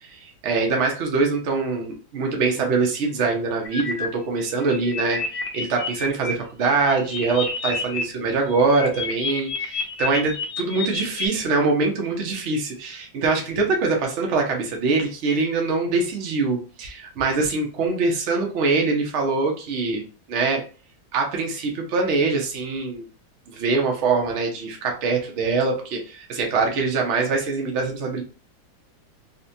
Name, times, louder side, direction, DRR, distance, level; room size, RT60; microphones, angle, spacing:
voice 1, 0.0-20.0 20.3-20.6 21.1-23.1 23.5-28.2, right 3 dB, 85° right, 1 dB, 0.6 m, -23 dB
sound 1, 3.6-4.1 4.5-6.3 6.6-8.0 8.3-11.3, left 4 dB, 70° left, 1.3 m, -30 dB
4.0 x 2.2 x 2.6 m, 0.37 s
omnidirectional pair, 2.2 m